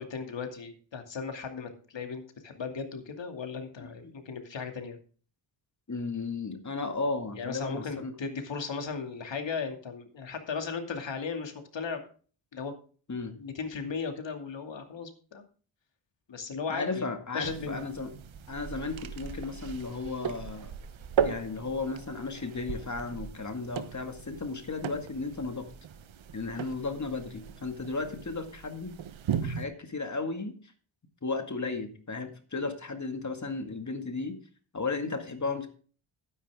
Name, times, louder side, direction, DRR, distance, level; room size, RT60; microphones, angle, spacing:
voice 1, 0.0-5.0 7.3-12.0 12.5-12.7 13.4-15.4 16.3-17.1 17.3-17.8, left 5 dB, 60° left, 6 dB, 2.6 m, -36 dB
voice 2, 3.8-4.1 5.9-8.1 13.1-13.3 16.7-18.1 18.5-20.7 21.2-25.7 26.3-29.0 29.4-30.6 31.2-34.4 34.7-35.7, left 3 dB, 35° left, 7 dB, 2.1 m, -34 dB
sound 1, 17.4-29.6, right 8 dB, 70° right, 1.1 m, -37 dB
12.0 x 10.0 x 3.6 m, 0.41 s
cardioid pair, 80°, 49 cm